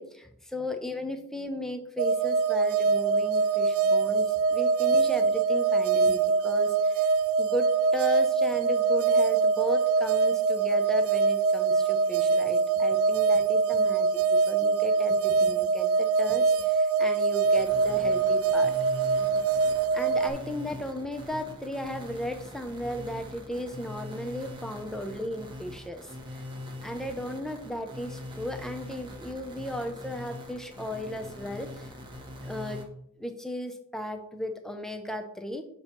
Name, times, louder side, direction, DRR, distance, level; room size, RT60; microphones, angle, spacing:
voice 1, 0.0-7.1 7.4-18.7 19.3-19.4 19.9-26.4 26.8-31.9 32.4-32.8 33.2-35.7, left 1 dB, ahead, 6 dB, 0.5 m, -35 dB
sound 1, 2.0-20.3, right 4 dB, 75° right, 0.5 m, -24 dB
sound 2, 17.4-32.8, left 1 dB, 20° right, 0.9 m, -42 dB
6.9 x 2.9 x 5.6 m, 0.72 s
head